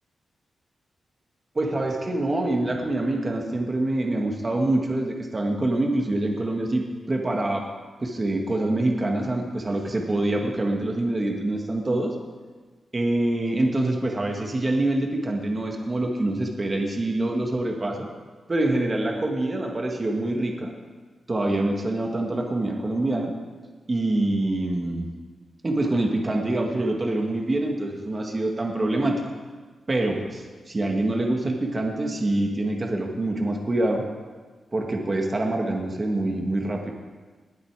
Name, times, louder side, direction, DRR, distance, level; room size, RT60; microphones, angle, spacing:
voice 1, 1.5-7.7 8.0-12.1 12.9-18.1 18.5-20.7 21.3-23.3 23.9-25.1 25.6-29.2 29.9-34.0 34.7-36.9, right 2 dB, 30° right, 1 dB, 1.7 m, -25 dB
19.5 x 8.2 x 4.8 m, 1.4 s
wide cardioid pair, 125°, 0 cm